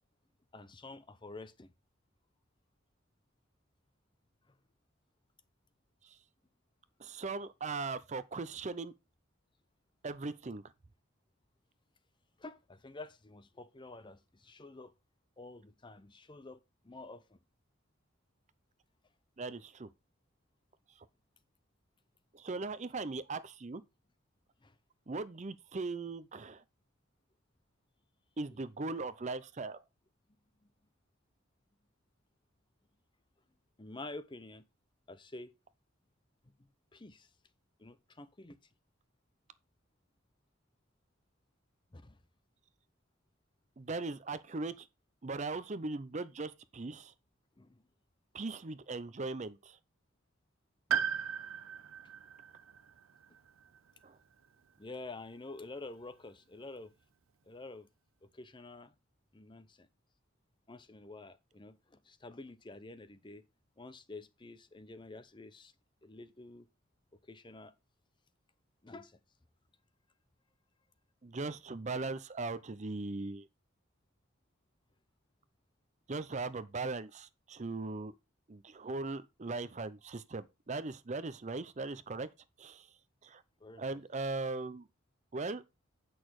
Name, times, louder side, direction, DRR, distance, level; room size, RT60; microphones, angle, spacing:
voice 1, 0.5-1.7 4.5-4.6 12.4-14.9 15.4-17.4 24.6-24.8 30.6-30.7 33.8-34.7 35.1-35.5 36.9-37.3 37.8-38.6 41.9-42.2 47.6-47.8 54.8-56.9 57.5-57.9 58.2-58.9 59.3-59.9 60.7-63.4 63.8-65.7 66.0-66.7 67.3-67.7 68.8-69.2 83.6-84.0, left 2 dB, 25° left, 0.6 m, -49 dB
voice 2, 7.0-8.9 10.0-10.6 19.4-19.9 21.0-21.1 22.3-23.8 25.1-26.6 28.4-29.8 43.8-44.9 45.2-47.1 48.3-49.8 54.0-54.2 71.2-73.5 76.1-78.1 78.5-82.3 82.6-82.9 83.2-83.4 83.8-84.9 85.3-85.6, right 3 dB, 35° right, 0.6 m, -39 dB
Piano, 50.9-54.8 55.0-55.1 56.3-56.4, right 8 dB, 80° right, 0.5 m, -38 dB
8.4 x 6.2 x 4.7 m
head